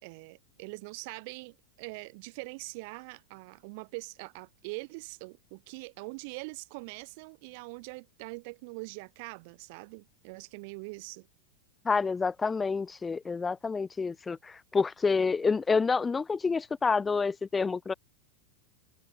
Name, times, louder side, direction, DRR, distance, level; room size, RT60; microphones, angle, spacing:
voice 1, 0.0-11.3, right 29 dB, 45° right, 1.4 m, -43 dB
voice 2, 11.9-17.9, left 4 dB, 15° left, 0.6 m, -28 dB
figure-of-eight pair, 90°, 0 cm